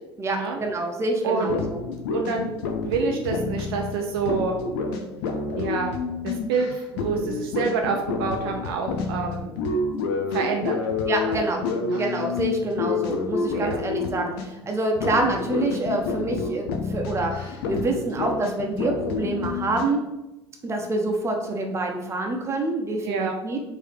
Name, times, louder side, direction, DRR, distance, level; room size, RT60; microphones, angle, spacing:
voice 1, 0.2-1.8 11.1-11.6 12.0-20.0 20.6-23.6, right 2 dB, 20° right, 2 dB, 0.8 m, -26 dB
voice 2, 1.2-1.6 2.1-2.5 2.8-4.6 5.5-5.9 6.2-9.5 10.3-10.8 11.2-11.4 11.8-12.0 13.5-13.8 23.1-23.4, right 5 dB, 60° right, 2 dB, 0.5 m, -27 dB
sound 1, 1.4-14.6 14.9-19.9, left 4 dB, 60° left, 0.6 m, -29 dB
4.6 x 2.8 x 3.3 m, 1.0 s
figure-of-eight pair, 65°, 14 cm